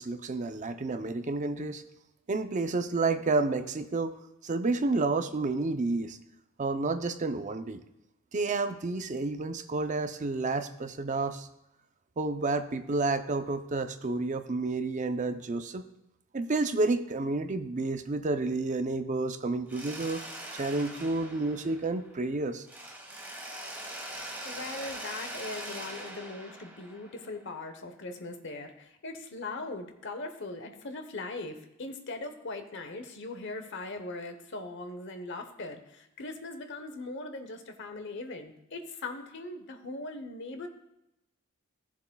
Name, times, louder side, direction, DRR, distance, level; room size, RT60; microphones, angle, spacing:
voice 1, 0.0-1.8 2.3-6.2 6.6-7.8 8.3-11.5 12.2-15.9 16.3-20.2 20.5-22.7, right 3 dB, 35° right, 9 dB, 0.5 m, -30 dB
Mechanisms, 19.7-22.3 22.7-27.5, right 1 dB, 10° right, 1.3 m, -42 dB
voice 2, 24.2-40.7, left 2 dB, 60° left, 7 dB, 0.9 m, -40 dB
15.5 x 7.2 x 2.3 m, 0.89 s
head